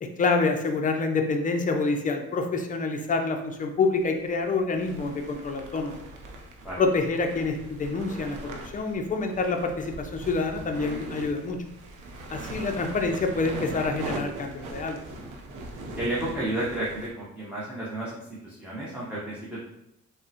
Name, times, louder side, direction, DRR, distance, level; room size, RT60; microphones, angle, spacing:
voice 1, 0.0-6.0 6.8-11.6 12.3-15.0, left 3 dB, 25° left, 4 dB, 0.4 m, -27 dB
sound 1, 3.1-3.2 4.0-17.1, right 2 dB, 85° right, 0.6 m, -40 dB
voice 2, 15.9-19.6, right 1 dB, 5° right, -9 dB, 0.7 m, -32 dB
3.5 x 2.1 x 2.7 m, 0.81 s
cardioid pair, 90°, 30 cm